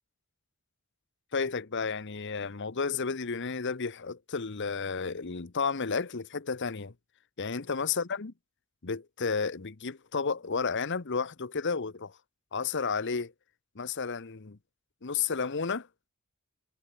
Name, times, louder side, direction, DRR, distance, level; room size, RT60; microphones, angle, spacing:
voice 1, 1.3-6.9 7.4-8.3 8.8-12.2 12.5-13.3 13.7-14.6 15.0-15.9, left 5 dB, 55° left, 1.0 m, -32 dB
head